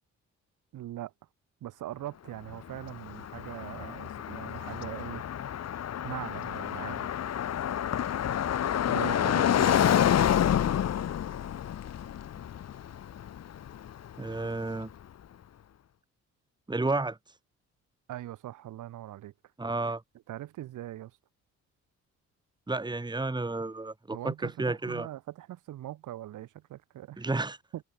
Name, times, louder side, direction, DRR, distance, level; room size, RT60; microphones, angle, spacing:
voice 1, 0.7-1.1 1.6-5.2 6.0-7.1 8.9-10.0 18.1-19.3 20.3-21.1 24.1-27.3 27.7-27.8, right 13 dB, 80° right, 7.9 m, -41 dB
Car passing by, 2.5-14.5, left 10 dB, 60° left, 1.8 m, -29 dB
voice 2, 14.2-14.9 16.7-17.2 19.6-20.0 22.7-25.1 27.2-27.6, right 2 dB, 15° right, 2.5 m, -31 dB
cardioid pair, 90°, 30 cm